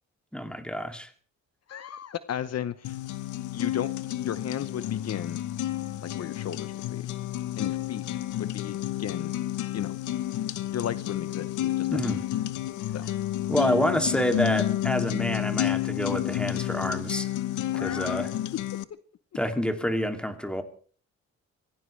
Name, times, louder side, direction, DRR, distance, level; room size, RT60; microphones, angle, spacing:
voice 1, 0.3-1.1 11.9-12.2 13.5-17.3 17.8-18.3 19.3-20.6, equal, 5° left, 2.7 m, -28 dB
voice 2, 1.7-3.0 3.5-5.4 6.0-7.1 7.6-9.3 9.7-10.0 10.7-12.0 12.9-13.1 17.7-18.3 18.5-18.6, left 9 dB, 60° left, 0.9 m, -35 dB
sound 1, 2.8-18.8, left 13 dB, 90° left, 1.0 m, -30 dB
25.5 x 17.0 x 3.3 m
cardioid pair, 95°, 29 cm